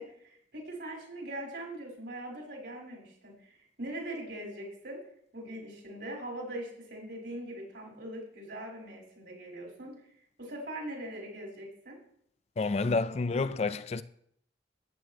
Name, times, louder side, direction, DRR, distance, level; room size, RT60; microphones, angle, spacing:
voice 1, 0.0-5.0 5.3-9.9 10.4-12.0, right 1 dB, 70° right, 4.3 m, -41 dB
voice 2, 12.6-14.0, left 3 dB, 35° left, 0.4 m, -29 dB
14.0 x 9.1 x 3.0 m
head